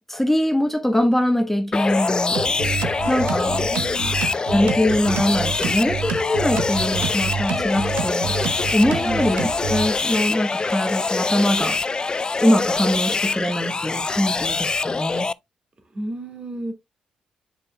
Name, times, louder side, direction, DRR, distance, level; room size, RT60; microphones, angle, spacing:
voice 1, 0.1-2.4 3.1-3.7 4.5-8.4 8.7-15.3, left 1 dB, 10° left, 1.2 m, -22 dB
sound 1, 1.7-15.3, left 4 dB, 30° left, 0.3 m, -24 dB
sound 2, 2.3-9.9, right 7 dB, 75° right, 0.8 m, -29 dB
voice 2, 3.7-4.2 9.0-9.3 15.9-16.7, right 1 dB, 35° right, 2.1 m, -31 dB
8.2 x 5.2 x 2.2 m
hypercardioid pair, 40°, 3 cm